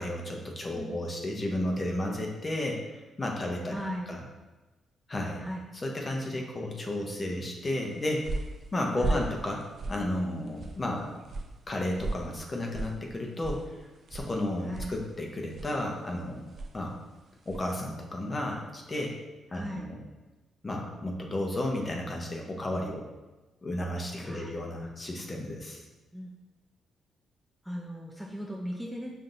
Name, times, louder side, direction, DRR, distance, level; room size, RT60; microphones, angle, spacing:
voice 1, 0.0-3.8 4.1-4.2 5.1-5.4 5.7-8.3 8.7-11.2 11.7-13.7 14.1-16.4 16.7-17.0 17.5-19.2 19.5-20.0 20.6-23.0 23.6-25.8, left 1 dB, 30° left, 0 dB, 0.8 m, -33 dB
voice 2, 3.7-4.1 5.4-5.6 9.0-9.2 14.6-14.9 19.5-19.9 24.2-24.5 26.1-26.3 27.6-29.1, equal, ahead, -2 dB, 0.5 m, -37 dB
sound 1, 7.7-17.8, right 2 dB, 55° right, 0.5 m, -39 dB
5.4 x 2.7 x 2.6 m, 1.2 s
cardioid pair, 75°, 0 cm